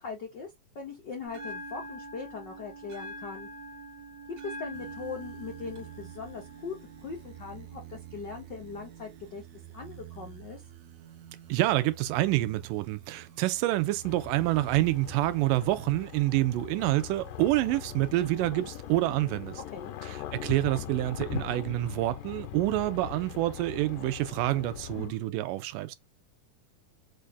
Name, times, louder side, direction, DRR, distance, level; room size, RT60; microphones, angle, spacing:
voice 1, 0.0-3.5 4.4-6.8 7.0-9.4 9.7-10.6 19.7-20.0 24.9-25.2, left 5 dB, 70° left, 1.0 m, -40 dB
Bell, 1.3-9.3, right 2 dB, 55° right, 1.3 m, -45 dB
sound 1, 4.7-20.0 20.5-21.6, right 12 dB, 70° right, 1.8 m, -50 dB
voice 2, 11.5-19.6 20.1-26.0, right 16 dB, 90° right, 2.3 m, -27 dB
sound 2, 14.0-25.1, left 12 dB, 90° left, 2.2 m, -41 dB
5.5 x 2.6 x 3.3 m
omnidirectional pair, 3.7 m